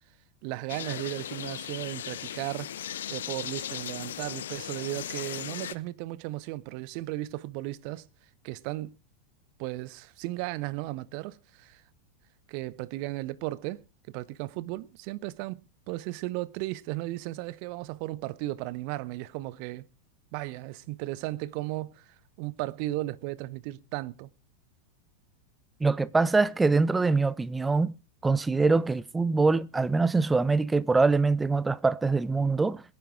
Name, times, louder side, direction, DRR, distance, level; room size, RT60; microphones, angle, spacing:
voice 1, 0.4-2.7 3.1-8.1 8.4-9.0 9.6-11.8 12.5-19.9 20.3-24.3, right 18 dB, 45° right, 0.7 m, -35 dB
sound 1, 0.7-5.8, left 10 dB, 60° left, 0.7 m, -37 dB
voice 2, 25.8-27.9 28.2-32.8, right 3 dB, 10° right, 0.6 m, -24 dB
22.5 x 9.7 x 3.6 m
figure-of-eight pair, 90°, 0 cm